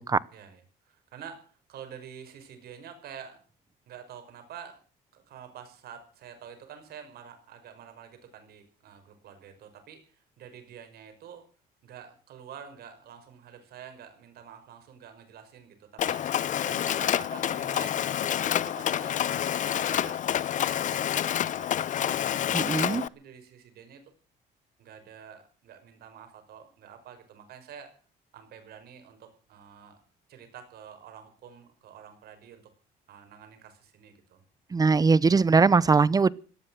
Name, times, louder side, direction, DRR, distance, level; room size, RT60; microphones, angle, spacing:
voice 1, 0.3-3.4 3.9-4.8 5.1-11.5 11.8-16.2 16.6-22.6 23.1-24.0 24.8-27.9 28.3-30.0 30.3-32.6 33.1-34.4, right 8 dB, 65° right, 7 dB, 5.5 m, -48 dB
Mechanisms, 16.0-23.1, left 10 dB, 50° left, 0.7 m, -28 dB
voice 2, 22.5-23.1 34.7-36.3, right 4 dB, 20° right, 22 dB, 0.7 m, -21 dB
18.0 x 12.0 x 6.3 m, 0.40 s
cardioid pair, 110°, 17 cm